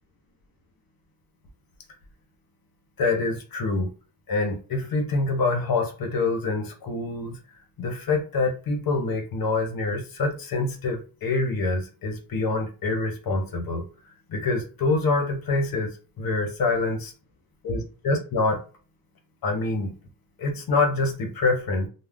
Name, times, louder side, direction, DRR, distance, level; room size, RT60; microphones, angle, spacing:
voice 1, 3.0-3.9 4.3-7.4 7.8-13.8 14.3-15.9 16.2-17.0 17.6-18.6 19.4-19.9 20.4-21.9, left 3 dB, 75° left, 3 dB, 0.8 m, -25 dB
2.3 x 2.1 x 3.4 m, 0.36 s
wide cardioid pair, 150°, 36 cm